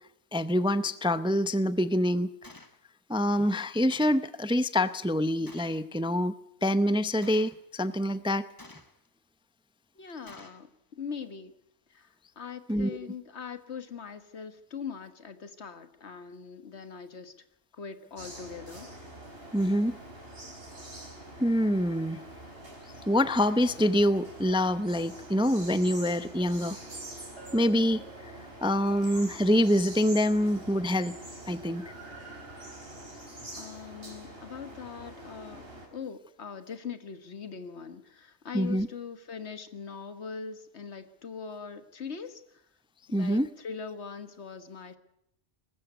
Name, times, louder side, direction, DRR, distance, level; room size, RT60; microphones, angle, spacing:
voice 1, 0.3-2.3 3.1-6.3 6.6-8.4 12.7-13.1 19.5-20.0 21.4-22.2 23.1-26.8 27.5-28.0 28.6-31.2 31.5-31.8 38.5-38.9 43.1-43.5, equal, 5° right, 13 dB, 0.5 m, -26 dB
Gunshot gunfire, 2.4-2.8 3.9-4.3 5.5-5.9 7.2-7.6 8.6-9.1 10.3-10.7, left 2 dB, 20° left, 1.2 m, -50 dB
voice 2, 9.9-11.5 11.9-17.3 17.7-18.9 33.5-35.6 35.9-42.6 43.1-45.0, left 6 dB, 75° left, 10 dB, 1.7 m, -41 dB
sound 1, 18.2-35.9, right 1 dB, 60° right, 4.5 m, -45 dB
Bell, 27.4-29.0, right 9 dB, 80° right, 5.2 m, -51 dB
20.0 x 15.0 x 9.4 m, 0.78 s
omnidirectional pair, 1.1 m